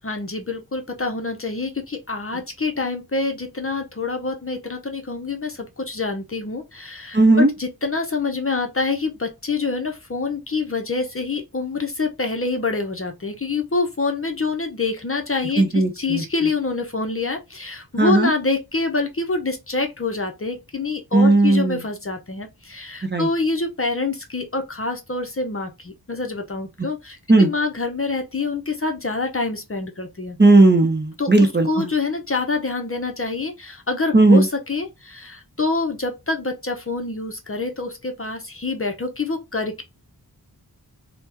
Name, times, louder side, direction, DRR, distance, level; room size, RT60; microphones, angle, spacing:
voice 1, 0.0-30.4 31.2-39.8, left 3 dB, 35° left, 0.6 m, -26 dB
voice 2, 7.1-7.5 15.6-16.2 18.0-18.3 21.1-21.8 23.0-23.3 27.3-27.5 30.4-31.9 34.1-34.4, right 2 dB, 30° right, 0.7 m, -15 dB
3.3 x 2.1 x 2.9 m
wide cardioid pair, 50°, 38 cm